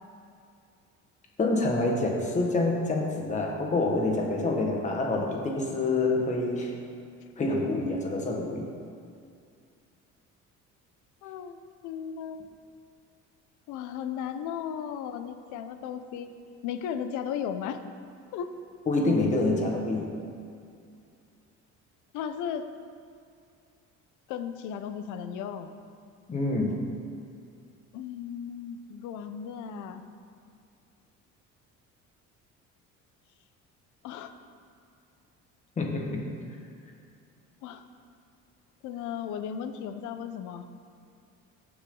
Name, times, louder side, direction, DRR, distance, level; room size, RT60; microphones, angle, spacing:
voice 1, 1.4-6.7 7.4-8.7 18.9-20.2 26.3-26.8 35.8-36.2, left 2 dB, 25° left, 0 dB, 1.6 m, -27 dB
voice 2, 11.2-12.4 13.7-16.3 16.6-17.8 18.3-18.5 22.1-22.6 24.3-25.7 27.9-30.0 34.0-34.3 37.6-37.8 38.8-40.7, left 8 dB, 80° left, 9 dB, 0.9 m, -35 dB
18.0 x 7.3 x 3.9 m, 2.4 s
cardioid pair, 170°, 30 cm